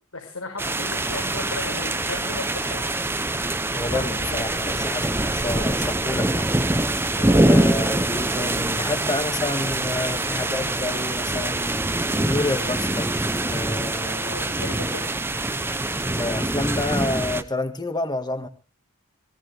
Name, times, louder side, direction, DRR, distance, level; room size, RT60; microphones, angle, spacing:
voice 1, 0.1-3.0 3.9-4.5 7.2-7.4 14.2-15.1, left 2 dB, 85° left, -1 dB, 5.5 m, -36 dB
sound 1, 0.6-17.4, right 1 dB, 10° right, 0.8 m, -24 dB
voice 2, 3.8-6.5 7.4-11.8 12.2-14.3 16.2-18.5, left 2 dB, 20° left, 7 dB, 1.8 m, -29 dB
18.0 x 18.0 x 3.5 m, 0.36 s
head